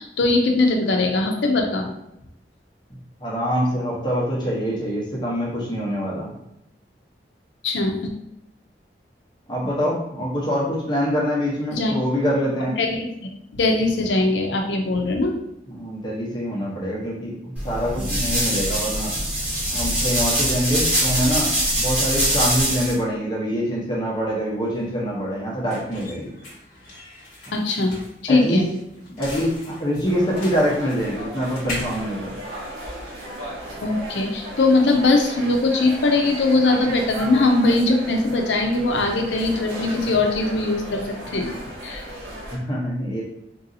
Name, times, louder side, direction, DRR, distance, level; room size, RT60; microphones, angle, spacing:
voice 1, 0.0-1.9 7.6-8.1 11.7-11.9 12.8-13.1 13.6-15.4 27.5-28.0 28.2-28.7 33.8-41.5 41.8-42.0, left 2 dB, 80° left, 3 dB, 0.5 m, -20 dB
voice 2, 3.2-6.3 9.5-12.8 15.7-19.1 19.7-21.5 21.8-26.3 28.3-28.6 29.2-32.3 42.5-43.2, equal, 25° left, -5 dB, 0.9 m, -25 dB
sound 1, 17.6-22.9, right 1 dB, 10° right, 1.3 m, -23 dB
sound 2, 24.2-33.2, left 1 dB, 50° left, 1.2 m, -39 dB
sound 3, 30.0-42.6, right 1 dB, 80° right, 1.1 m, -36 dB
3.7 x 2.7 x 2.7 m, 0.83 s
head